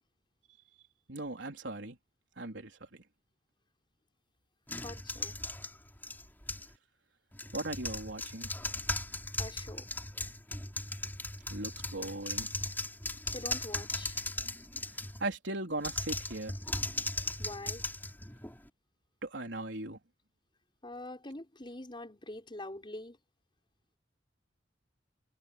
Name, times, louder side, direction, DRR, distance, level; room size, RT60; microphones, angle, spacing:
voice 1, 1.1-2.0 2.4-3.0 7.5-8.5 11.5-12.5 15.2-16.6 19.2-20.0, right 2 dB, 80° right, 3.9 m, -38 dB
voice 2, 4.7-5.4 9.4-9.9 13.3-14.2 17.4-17.9 20.8-23.2, left 1 dB, 25° left, 6.4 m, -44 dB
sound 1, 4.7-6.7 7.3-15.3 15.8-18.7, left 2 dB, 10° left, 4.7 m, -38 dB
head